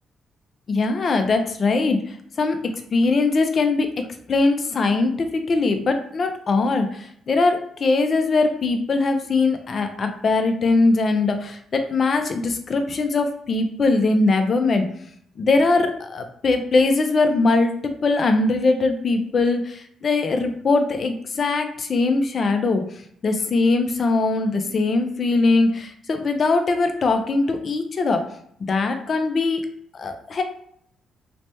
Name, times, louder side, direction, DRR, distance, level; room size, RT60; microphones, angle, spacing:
voice 1, 0.7-2.6 2.9-14.9 15.4-22.9 23.2-28.3 28.7-29.6 29.9-30.4, left 3 dB, 45° left, 6 dB, 0.4 m, -21 dB
3.1 x 2.1 x 2.8 m, 0.67 s
cardioid pair, 90°, 0 cm